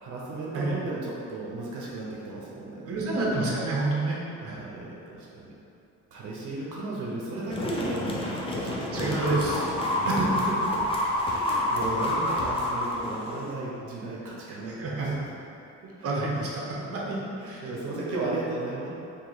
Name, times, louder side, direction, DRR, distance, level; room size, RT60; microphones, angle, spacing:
voice 1, 0.0-3.1 4.0-4.1 4.4-5.5 6.1-9.1 9.9-10.3 10.6-10.9 11.2-15.3 16.0-16.1 16.8-18.9, right 2 dB, 85° right, -5 dB, 0.7 m, -35 dB
voice 2, 2.9-4.2 4.4-4.6 8.9-10.2 14.8-15.2 16.0-17.2 17.5-17.6, right 2 dB, 50° right, -3 dB, 0.7 m, -28 dB
sound 1, 7.5-13.5, left 1 dB, 20° left, 0.5 m, -28 dB
2.8 x 2.8 x 3.9 m, 2.7 s
cardioid pair, 90°, 30 cm